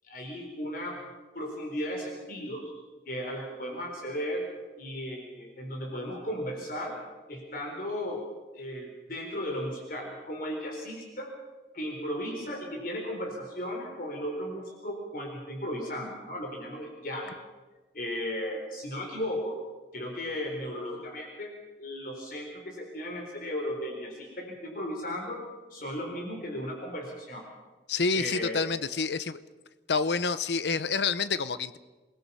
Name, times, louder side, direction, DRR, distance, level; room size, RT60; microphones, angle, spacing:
voice 1, 0.0-1.1 1.3-2.6 3.1-4.4 4.8-7.0 7.3-8.2 8.5-11.3 11.7-17.3 17.9-19.6 19.9-21.5 21.8-25.4 25.7-27.4 28.1-28.6, equal, 50° left, 1 dB, 4.1 m, -35 dB
voice 2, 27.9-29.4 29.9-31.8, left 4 dB, 75° left, 14 dB, 0.8 m, -28 dB
27.5 x 20.0 x 5.6 m, 1.2 s
head